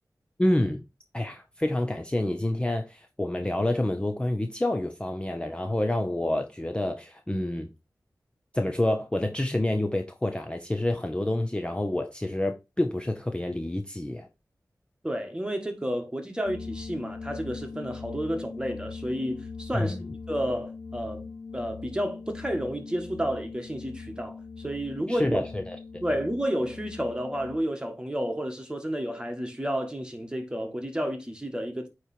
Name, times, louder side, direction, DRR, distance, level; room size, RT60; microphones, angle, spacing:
voice 1, 0.4-0.8 1.1-7.7 8.5-14.3 19.7-20.0 25.1-25.8, left 1 dB, 15° left, 0.7 m, -28 dB
voice 2, 15.0-20.0 20.3-25.4 26.0-31.9, equal, 15° right, 1.5 m, -31 dB
sound 1, 16.4-27.6, left 4 dB, 90° left, 1.2 m, -41 dB
8.8 x 3.2 x 4.3 m
wide cardioid pair, 80°, 7 cm